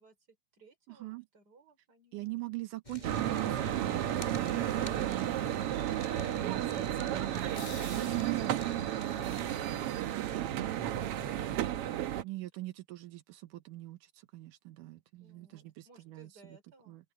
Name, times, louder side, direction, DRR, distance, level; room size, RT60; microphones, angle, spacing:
voice 1, 0.0-2.4 15.2-17.0, right 3 dB, 30° right, 5.6 m, -59 dB
voice 2, 0.9-1.3 2.1-7.5 7.8-8.5 9.1-9.4 10.0-10.3 12.2-16.6 16.9-17.1, right 19 dB, 85° right, 2.6 m, -43 dB
Fire, 2.8-9.6, left 1 dB, 10° left, 5.0 m, -48 dB
sound 1, 3.0-12.2, right 12 dB, 65° right, 1.5 m, -33 dB
sound 2, 7.3-8.9, left 10 dB, 70° left, 2.9 m, -52 dB
open air
omnidirectional pair, 3.7 m